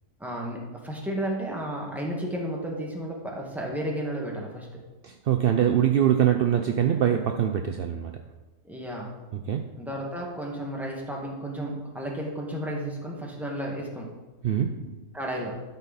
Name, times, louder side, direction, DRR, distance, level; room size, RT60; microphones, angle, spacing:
voice 1, 0.2-4.8 8.6-9.1 9.8-14.1 15.1-15.5, right 1 dB, ahead, -2 dB, 1.6 m, -33 dB
voice 2, 5.0-8.1 9.3-9.6 14.4-15.0, right 9 dB, 65° right, 5 dB, 0.5 m, -23 dB
12.0 x 5.5 x 4.1 m, 1.2 s
omnidirectional pair, 1.6 m